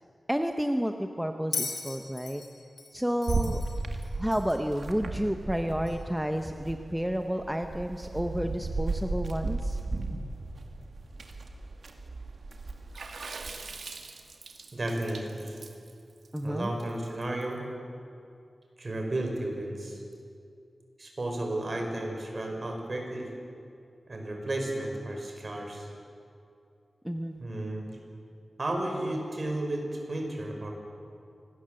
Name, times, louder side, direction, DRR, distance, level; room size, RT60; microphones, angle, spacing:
voice 1, 0.3-2.4 2.9-3.6 4.2-9.8 16.3-16.7 27.0-27.4, equal, 5° right, 5 dB, 1.0 m, -30 dB
Bell, 1.5-4.7 5.9-6.0, left 4 dB, 80° left, 3.4 m, -38 dB
sound 1, 3.3-6.1 6.4-13.6, right 3 dB, 65° right, 2.2 m, -35 dB
Water / Splash splatter, 12.9-17.4, right 4 dB, 85° right, 2.1 m, -43 dB
voice 2, 14.7-15.6 16.4-17.6 18.8-20.0 21.0-23.3 24.1-25.9 27.4-27.9 28.6-30.7, right 1 dB, 40° right, 2 dB, 5.3 m, -33 dB
25.5 x 19.5 x 7.8 m, 2.5 s
wide cardioid pair, 105°, 0 cm